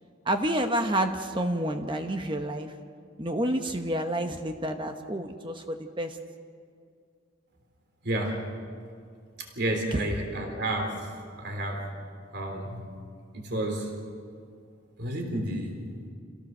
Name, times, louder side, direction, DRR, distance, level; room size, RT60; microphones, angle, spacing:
voice 1, 0.3-2.7 3.2-6.2 9.9-10.1, right 1 dB, 25° right, 5 dB, 1.0 m, -29 dB
voice 2, 8.0-8.5 9.4-11.1 11.4-11.9 12.3-12.9 13.3-14.0 15.0-15.9, right 1 dB, 55° right, 3 dB, 3.6 m, -31 dB
28.5 x 17.0 x 6.6 m, 2.2 s
head